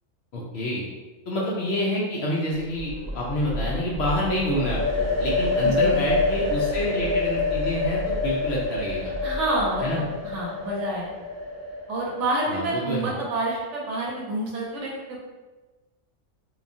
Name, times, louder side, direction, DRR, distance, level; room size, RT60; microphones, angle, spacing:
voice 1, 0.3-0.8 1.3-9.1 9.8-10.0 12.5-13.1, left 1 dB, 65° left, -4 dB, 0.7 m, -28 dB
sound 1, 2.5-10.4, equal, 20° right, 0.7 m, -34 dB
sound 2, 4.5-12.2, left 3 dB, 30° left, 1.2 m, -27 dB
voice 2, 5.6-6.0 9.2-9.9 10.2-11.1 11.9-15.2, right 2 dB, 70° right, -3 dB, 0.9 m, -28 dB
2.9 x 2.2 x 2.5 m, 1.2 s
omnidirectional pair, 1.4 m